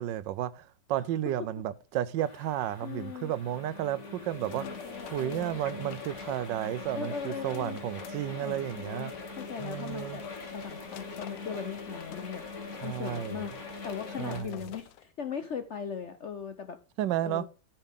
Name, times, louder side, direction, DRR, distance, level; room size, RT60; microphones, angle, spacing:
voice 1, 0.0-4.7 5.1-9.1 9.6-10.2 12.8-13.4 14.2-14.6 17.0-17.5, right 12 dB, 90° right, 1.3 m, -32 dB
sound 1, 2.2-14.4, left 4 dB, 40° left, 2.0 m, -42 dB
voice 2, 2.8-3.3 4.6-5.6 6.9-7.8 8.4-10.2 10.5-12.4 12.8-16.8 17.2-17.5, left 7 dB, 60° left, 0.7 m, -39 dB
sound 2, 4.2-15.0, left 13 dB, 90° left, 1.4 m, -52 dB
13.0 x 5.6 x 3.7 m
omnidirectional pair, 2.0 m